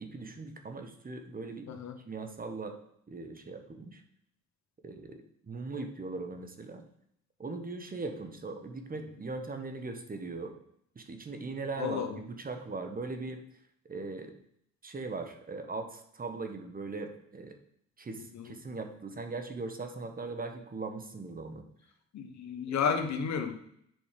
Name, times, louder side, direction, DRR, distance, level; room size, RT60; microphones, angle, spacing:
voice 1, 0.0-1.7 2.1-2.8 3.1-4.0 4.8-6.8 7.4-10.5 10.9-13.4 13.9-14.3 14.8-17.6 18.0-21.6, right 3 dB, 30° right, 6 dB, 1.3 m, -39 dB
voice 2, 11.8-12.2 18.3-18.5 22.1-23.5, left 6 dB, 65° left, 6 dB, 1.2 m, -32 dB
7.5 x 5.2 x 5.1 m, 0.69 s
cardioid pair, 90°, 30 cm